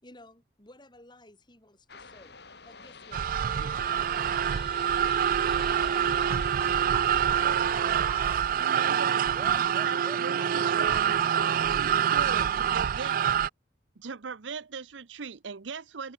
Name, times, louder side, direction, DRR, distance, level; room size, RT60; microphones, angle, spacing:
voice 1, 0.0-4.8 6.8-7.7 8.5-9.1 9.5-9.8 10.4-10.5 12.1-12.4, left 2 dB, 25° left, 7.2 m, -55 dB
sound 1, 1.9-9.9, left 6 dB, 60° left, 4.8 m, -50 dB
sound 2, 3.1-13.5, right 8 dB, 50° right, 0.3 m, -26 dB
voice 2, 5.8-8.7 9.4-11.3 11.9-12.9, right 2 dB, 15° right, 3.7 m, -46 dB
voice 3, 8.6-9.3 9.8-12.4 12.7-13.2 14.0-16.1, right 5 dB, 85° right, 0.8 m, -39 dB
head